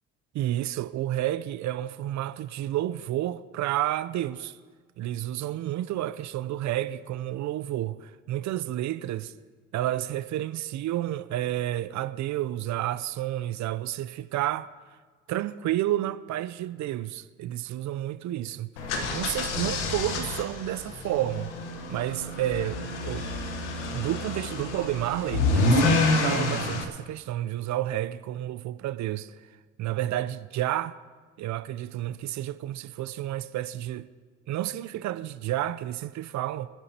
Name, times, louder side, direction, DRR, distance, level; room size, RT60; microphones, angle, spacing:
voice 1, 0.3-4.6 5.0-9.3 9.7-14.7 15.3-18.7 19.1-21.5 21.9-23.3 23.9-29.4 29.8-31.0 31.4-34.1 34.5-36.7, right 13 dB, 55° right, 0.6 m, -30 dB
sound 1, 18.8-26.8, left 2 dB, 85° left, 1.2 m, -28 dB
25.5 x 10.5 x 2.9 m
hypercardioid pair, 55°, 34 cm